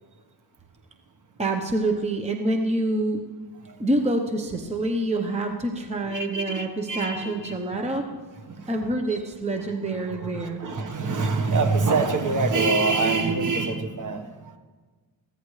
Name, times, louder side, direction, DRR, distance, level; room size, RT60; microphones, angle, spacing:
voice 1, 1.4-3.2 3.8-8.1 8.7-10.6, right 2 dB, 15° right, 3 dB, 0.9 m, -26 dB
voice 2, 6.1-7.8 8.5-8.8 9.1-9.2 10.0-14.6, right 3 dB, 40° right, 7 dB, 1.4 m, -26 dB
22.0 x 15.5 x 3.3 m, 1.4 s
wide cardioid pair, 135°, 46 cm